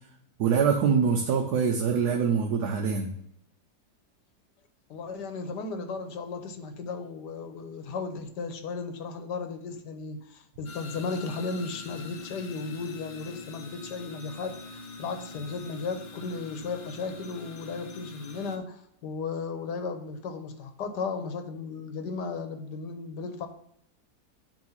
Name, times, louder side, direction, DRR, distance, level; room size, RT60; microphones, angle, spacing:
voice 1, 0.4-3.1, right 6 dB, 75° right, 3 dB, 1.4 m, -24 dB
voice 2, 4.9-23.5, left 4 dB, 85° left, 8 dB, 1.5 m, -35 dB
sound 1, 10.6-18.6, left 3 dB, 40° left, 0.8 m, -44 dB
9.0 x 3.4 x 5.7 m, 0.74 s
omnidirectional pair, 1.7 m